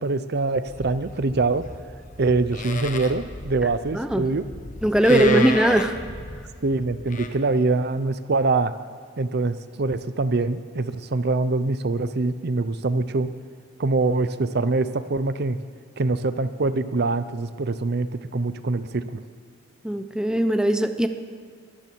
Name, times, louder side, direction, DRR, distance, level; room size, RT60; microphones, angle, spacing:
voice 1, 0.0-1.7 2.2-4.4 5.1-5.6 6.6-8.7 9.2-13.3 13.8-15.6 16.0-19.2, right 3 dB, 55° right, 13 dB, 0.7 m, -24 dB
Livestock farm animals working animals, 0.7-7.3, left 3 dB, 40° left, 1.2 m, -35 dB
voice 2, 3.9-4.3 4.8-6.0 19.8-21.1, right 1 dB, 5° right, 8 dB, 0.6 m, -20 dB
22.0 x 13.5 x 4.6 m, 2.1 s
head